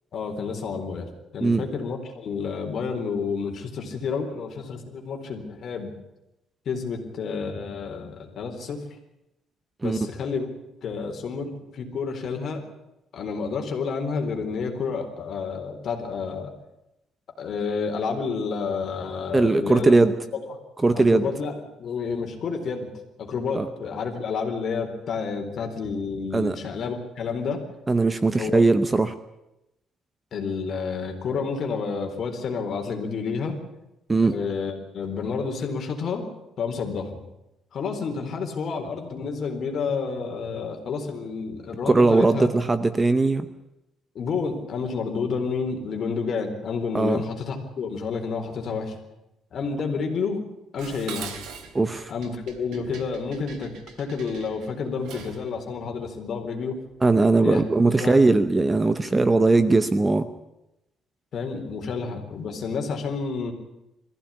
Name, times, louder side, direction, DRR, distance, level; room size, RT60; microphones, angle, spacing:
voice 1, 0.1-5.9 6.7-8.8 9.8-10.5 10.8-12.6 13.1-16.5 17.4-20.0 20.5-20.6 20.9-22.9 23.2-27.6 28.3-28.7 30.3-33.6 34.2-36.3 36.6-37.2 37.7-42.5 44.1-49.0 49.5-50.4 50.7-51.3 52.1-56.8 57.4-57.6 58.0-58.2 61.3-63.5, left 5 dB, 40° left, 3 dB, 4.1 m, -30 dB
voice 2, 19.3-20.1 20.8-21.2 23.5-23.7 26.3-26.6 27.9-29.1 34.1-34.4 41.9-43.5 46.9-47.2 51.7-52.1 57.0-60.3, right 3 dB, 15° right, 12 dB, 0.8 m, -19 dB
Dishes pots and pans, 50.8-55.5, right 6 dB, 85° right, 3.3 m, -42 dB
22.0 x 15.5 x 10.0 m, 0.90 s
cardioid pair, 175°, 0 cm